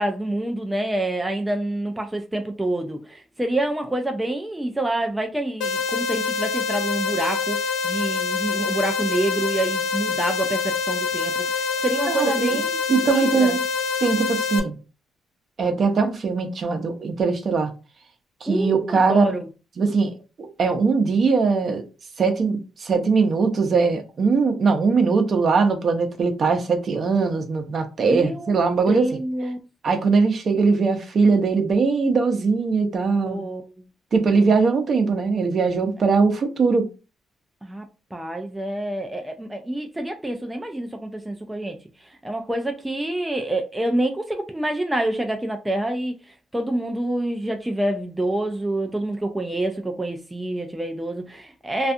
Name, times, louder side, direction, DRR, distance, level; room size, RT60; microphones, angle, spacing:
voice 1, 0.0-13.6 18.5-19.5 28.0-28.6 28.9-29.6 33.3-33.7 37.6-37.9 38.1-46.1 46.5-51.9, right 1 dB, 10° right, 0.3 m, -27 dB
sound 1, 5.6-14.6, left 5 dB, 90° left, 0.4 m, -25 dB
voice 2, 12.1-12.6 12.9-13.6 14.0-14.8 15.6-17.7 18.4-19.4 19.8-21.8 22.2-29.1 29.8-33.4 34.1-36.9, right 4 dB, 50° right, 0.6 m, -21 dB
2.4 x 2.3 x 2.6 m
cardioid pair, 90°, 0 cm